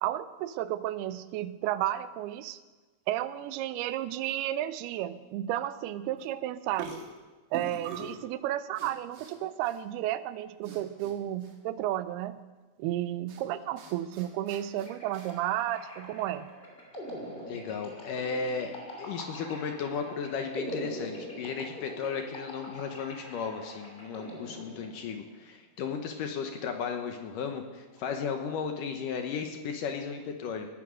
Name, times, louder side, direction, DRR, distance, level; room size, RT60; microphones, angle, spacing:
voice 1, 0.0-2.6 3.1-7.0 7.5-12.4 12.8-16.5, right 13 dB, 85° right, 14 dB, 2.6 m, -32 dB
sound 1, 6.2-6.4 6.7-8.2 8.8-9.4 9.6-9.8 10.6-11.1 11.4-11.6 13.3-13.4 13.8-15.3, right 4 dB, 60° right, 3.0 m, -44 dB
sound 2, 14.8-25.3, equal, 15° left, 2.4 m, -43 dB
voice 2, 17.5-18.7 19.0-30.7, left 6 dB, 70° left, 5 dB, 2.3 m, -35 dB
18.5 x 9.9 x 6.4 m, 1.3 s
omnidirectional pair, 4.5 m